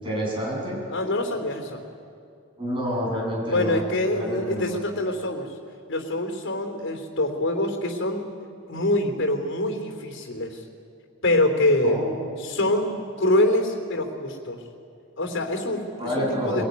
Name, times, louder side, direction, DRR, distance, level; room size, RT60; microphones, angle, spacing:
voice 1, 0.0-0.8 2.6-3.8 4.1-4.7 11.8-12.3 16.0-16.7, equal, 25° right, -3 dB, 7.9 m, -28 dB
voice 2, 0.9-1.8 3.5-5.6 5.9-8.3 8.7-10.6 11.2-12.0 12.4-14.6 15.2-16.6, left 1 dB, 60° left, 4 dB, 3.3 m, -25 dB
23.0 x 17.5 x 9.5 m, 2.4 s
head